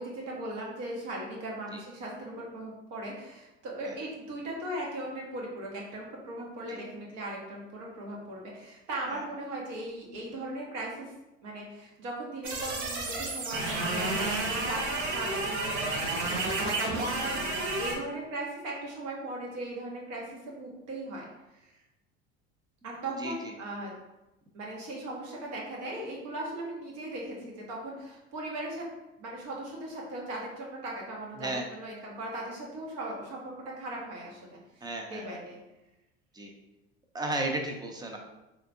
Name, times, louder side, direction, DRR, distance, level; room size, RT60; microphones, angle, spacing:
voice 1, 0.0-11.1 11.4-14.8 15.1-21.2 21.5-21.8 22.8-24.0 24.5-28.9 29.2-35.6, right 1 dB, 65° right, -2 dB, 1.2 m, -38 dB
sound 1, 12.4-17.9, right 2 dB, 90° right, 0.8 m, -31 dB
voice 2, 23.2-23.5 31.4-31.6 34.8-35.4 36.3-36.5 37.1-38.2, right 1 dB, 15° right, 2 dB, 0.5 m, -34 dB
3.3 x 2.8 x 2.6 m, 0.98 s
supercardioid pair, 90°, 32 cm